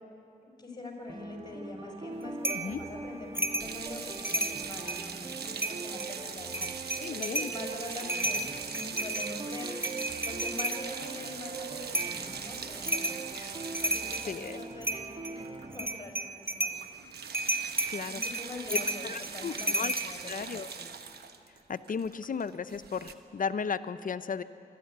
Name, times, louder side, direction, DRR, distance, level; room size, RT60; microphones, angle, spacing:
voice 1, 0.6-9.9 10.2-13.3 13.8-16.7 18.0-20.5 20.8-20.9, left 2 dB, 25° left, 1 dB, 5.2 m, -44 dB
sound 1, 1.1-15.9, right 3 dB, 35° right, 1.4 m, -43 dB
sound 2, 2.4-2.7 3.4-3.7 4.1-5.1 5.6-6.1 6.5-7.6 7.9-10.8 11.9-12.2 12.9-13.2 13.6-14.3 14.8-15.4 15.7-16.8 17.3-20.1, right 1 dB, 15° right, 1.5 m, -32 dB
sound 3, 3.6-16.0 16.2-16.4 16.7-23.1, right 6 dB, 75° right, 1.1 m, -42 dB
voice 2, 7.0-7.5 13.3-13.5 14.3-14.6 17.9-18.2 18.7-18.8 19.0-19.9 20.3-20.7 21.7-24.4, left 6 dB, 55° left, 13 dB, 0.6 m, -35 dB
25.0 x 12.0 x 9.4 m, 2.7 s
cardioid pair, 55°, 16 cm